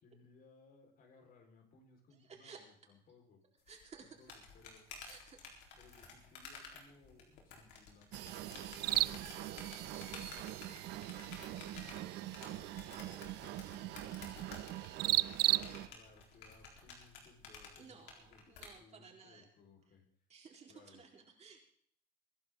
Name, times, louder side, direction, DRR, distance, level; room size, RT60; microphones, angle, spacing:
voice 1, 0.0-3.4 4.0-4.9 5.8-11.0 11.4-14.9 15.2-20.0 20.7-21.0, left 4 dB, 60° left, 2 dB, 5.0 m, -64 dB
voice 2, 2.2-2.6 3.7-4.3 5.1-5.4 17.7-19.4 20.3-21.6, right 5 dB, 40° right, 1 dB, 4.3 m, -56 dB
sound 1, 3.7-18.7, left 5 dB, 85° left, 4.2 m, -53 dB
sound 2, 4.2-18.4, right 16 dB, 70° right, 0.5 m, -41 dB
sound 3, 8.1-15.9, right 14 dB, 90° right, 1.1 m, -44 dB
23.0 x 11.0 x 3.9 m, 0.63 s
cardioid pair, 110°, 17 cm